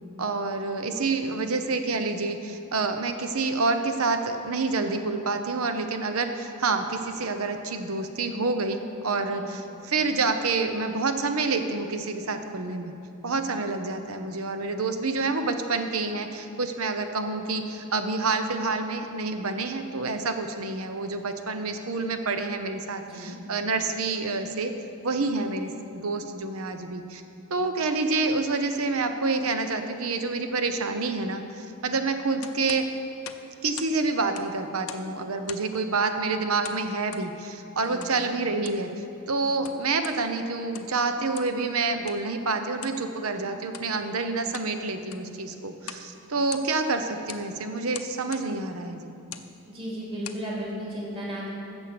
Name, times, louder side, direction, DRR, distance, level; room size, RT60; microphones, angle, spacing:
voice 1, 0.2-12.9 13.2-24.7 25.0-27.2 27.5-32.9 33.6-38.9 39.3-49.2, right 3 dB, 75° right, 7 dB, 0.9 m, -28 dB
voice 2, 23.0-23.3 37.7-38.1 49.7-51.5, equal, 25° right, -5 dB, 2.8 m, -35 dB
sound 1, 32.4-34.0 34.2-35.1 35.4-35.8 36.6-37.3 38.0-38.2 38.5-38.9 39.4-40.2 40.6-41.0 41.3-41.6 42.0-42.2 42.8-43.0 43.6-43.9 44.3-44.7 45.0-45.3 45.8-46.1 46.4-46.9 47.3-47.5 47.9-48.5 49.2-49.5 50.0-50.5, left 10 dB, 80° left, 0.7 m, -42 dB
15.0 x 7.0 x 6.0 m, 2.8 s
head